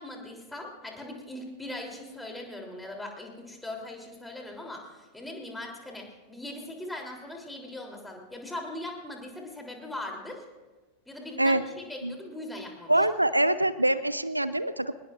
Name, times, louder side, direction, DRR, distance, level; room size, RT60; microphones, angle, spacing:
voice 1, 0.0-10.4 11.1-12.9, left 1 dB, 5° left, 1 dB, 3.3 m, -40 dB
voice 2, 12.9-14.9, right 1 dB, 85° right, 15 dB, 0.5 m, -24 dB
23.0 x 20.0 x 2.5 m, 1.2 s
figure-of-eight pair, 90°, 0 cm